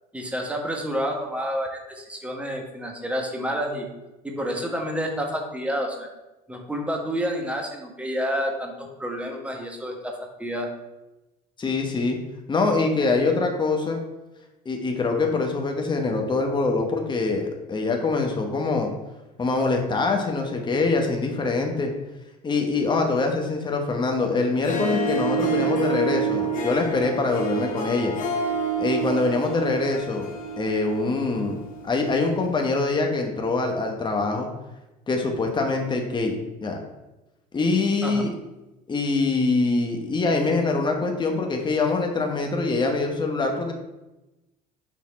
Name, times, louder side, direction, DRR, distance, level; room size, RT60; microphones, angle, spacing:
voice 1, 0.1-3.9 4.2-6.1 6.5-10.1 10.4-10.7 38.0-38.3, equal, 5° right, 1 dB, 1.3 m, -29 dB
voice 2, 11.6-12.2 12.5-14.0 14.6-18.9 19.4-21.9 22.4-28.1 28.8-30.3 30.6-31.6 31.8-34.5 35.1-36.8 37.5-38.3 38.9-43.7, left 3 dB, 25° left, 2 dB, 1.1 m, -24 dB
Harp, 24.5-31.9, right 3 dB, 45° left, 1.4 m, -28 dB
6.3 x 4.0 x 4.2 m, 1.0 s
hypercardioid pair, 65°, 20 cm